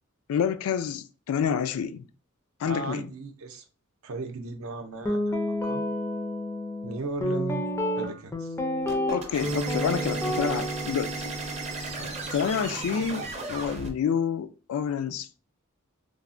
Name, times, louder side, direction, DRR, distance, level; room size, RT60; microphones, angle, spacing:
voice 1, 0.3-2.1 2.6-3.1 9.1-11.3 12.3-15.4, left 7 dB, 90° left, 0.3 m, -28 dB
voice 2, 2.6-3.6 4.0-5.4 5.6-5.8 6.8-7.6 7.9-8.6 12.0-12.3 12.7-12.8, right 3 dB, 75° right, 0.5 m, -36 dB
Guitar, 5.0-13.2, equal, 10° left, 0.3 m, -30 dB
sound 1, 8.9-13.9, right 3 dB, 30° right, 0.6 m, -36 dB
3.3 x 2.0 x 2.5 m
head